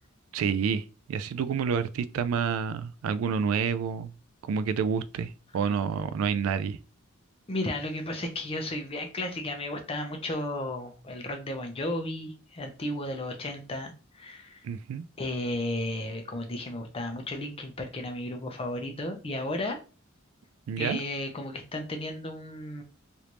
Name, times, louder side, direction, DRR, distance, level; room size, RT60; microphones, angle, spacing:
voice 1, 0.3-4.1 4.4-6.8 14.6-15.0 20.7-21.0, right 6 dB, 85° right, 0.3 m, -29 dB
voice 2, 7.5-14.6 15.2-19.8 20.8-22.8, left 1 dB, 30° left, 0.6 m, -34 dB
3.3 x 2.6 x 3.0 m
head